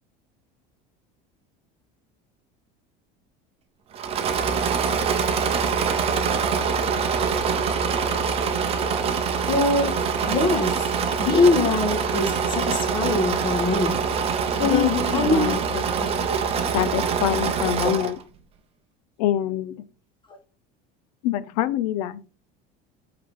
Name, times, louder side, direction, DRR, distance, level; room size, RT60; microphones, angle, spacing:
Engine / Mechanisms, 3.9-18.2, right 6 dB, 30° right, 0.8 m, -24 dB
voice 1, 9.5-9.9 10.2-10.9 11.2-14.0 14.6-15.4 16.0-16.4, left 2 dB, 25° left, 1.6 m, -23 dB
voice 2, 14.6-15.8 16.7-18.2 19.2-19.8 21.2-22.2, left 11 dB, 85° left, 0.7 m, -25 dB
7.6 x 3.9 x 3.6 m
cardioid pair, 160°, 20 cm